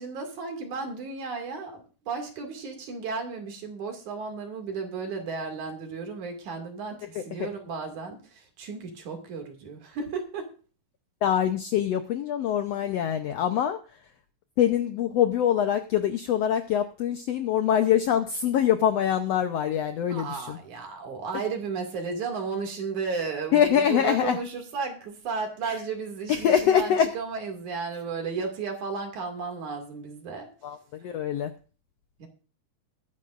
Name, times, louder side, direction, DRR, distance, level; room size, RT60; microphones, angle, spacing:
voice 1, 0.0-10.5 20.1-30.5 32.2-32.3, right 4 dB, 65° right, 4 dB, 3.7 m, -34 dB
voice 2, 11.2-13.8 14.6-20.6 23.5-24.4 26.3-27.1 30.6-30.8 31.0-31.5, left 9 dB, 75° left, 8 dB, 1.5 m, -24 dB
21.0 x 9.8 x 2.5 m, 0.37 s
omnidirectional pair, 3.8 m